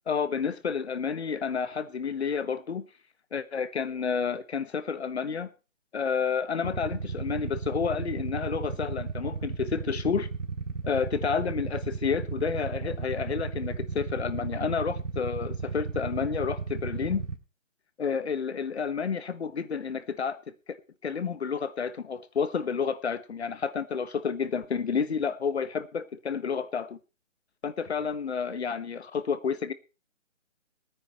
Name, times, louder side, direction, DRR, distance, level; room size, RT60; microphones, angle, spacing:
voice 1, 0.1-2.9 3.3-5.5 5.9-10.3 10.8-17.2 18.0-20.4 20.7-27.0 27.6-29.7, left 6 dB, 55° left, 1.3 m, -30 dB
Motorcycle / Idling, 6.6-17.4, right 4 dB, 80° right, 2.0 m, -34 dB
18.5 x 9.7 x 4.3 m
hypercardioid pair, 160°, 38 cm